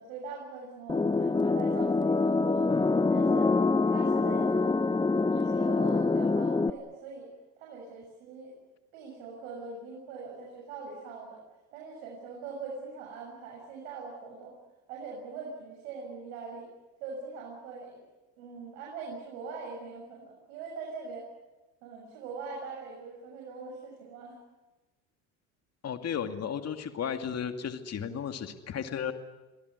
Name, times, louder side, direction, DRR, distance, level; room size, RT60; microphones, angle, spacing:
voice 1, 0.0-2.7 3.1-4.8 5.3-7.3 7.6-8.5 8.9-11.4 11.7-14.5 14.9-16.7 17.0-18.0 18.4-21.3 21.8-24.4, right 4 dB, 85° right, -1 dB, 7.1 m, -42 dB
sound 1, 0.9-6.7, left 3 dB, 10° left, 0.9 m, -25 dB
voice 2, 25.8-29.1, left 8 dB, 40° left, 7 dB, 2.5 m, -34 dB
26.0 x 18.0 x 9.7 m, 1.1 s
supercardioid pair, 95°, 39 cm